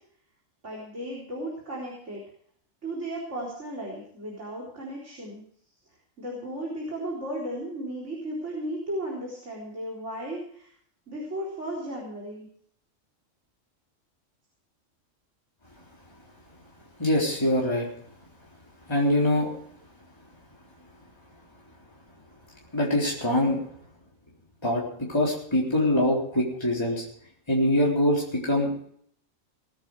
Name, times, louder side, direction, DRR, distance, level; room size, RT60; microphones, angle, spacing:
voice 1, 0.6-2.2 2.8-5.4 6.2-10.7 11.1-12.5, right 1 dB, 65° right, -3 dB, 4.5 m, -35 dB
voice 2, 17.0-17.9 18.9-19.5 22.7-23.6 24.6-27.0 27.5-28.9, left 1 dB, 20° left, -4 dB, 4.0 m, -24 dB
20.5 x 10.5 x 4.8 m, 0.63 s
omnidirectional pair, 1.3 m